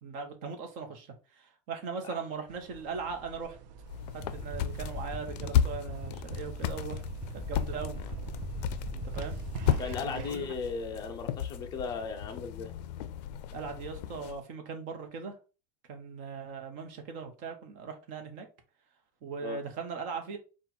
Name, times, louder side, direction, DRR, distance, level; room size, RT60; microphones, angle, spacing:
voice 1, 0.0-1.1 1.3-3.6 4.1-7.0 7.3-8.0 8.9-9.4 10.0-10.5 13.5-15.3 15.9-18.5 19.2-20.4, right 5 dB, 40° right, 1.0 m, -39 dB
sound 1, 2.5-10.3, right 6 dB, 85° right, 0.7 m, -47 dB
sound 2, 3.9-14.4, left 9 dB, 70° left, 0.4 m, -34 dB
sound 3, 4.2-10.0, right 1 dB, 5° right, 1.0 m, -40 dB
voice 2, 9.8-12.7 19.4-19.6, left 5 dB, 20° left, 0.6 m, -36 dB
4.3 x 2.4 x 4.2 m
supercardioid pair, 175°, 21 cm